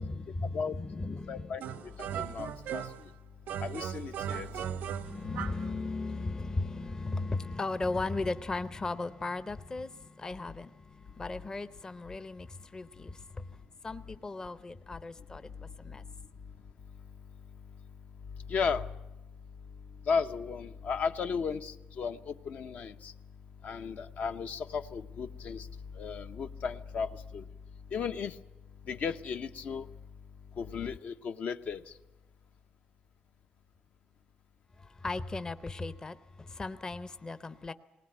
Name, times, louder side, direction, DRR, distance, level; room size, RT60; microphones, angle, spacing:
voice 1, 0.0-1.6 5.0-13.6 13.8-16.0 34.8-37.7, left 3 dB, 20° left, 0.7 m, -37 dB
voice 2, 1.3-1.6 2.2-2.8 3.6-4.5 18.5-18.8 20.1-23.1 23.6-25.7 26.0-27.4 27.9-28.3 28.9-29.9 30.6-31.8, left 5 dB, 60° left, 0.8 m, -34 dB
sound 1, 1.6-3.1 3.5-5.7, right 9 dB, 90° right, 0.8 m, -37 dB
19.5 x 19.5 x 8.9 m
cardioid pair, 130°, 3 cm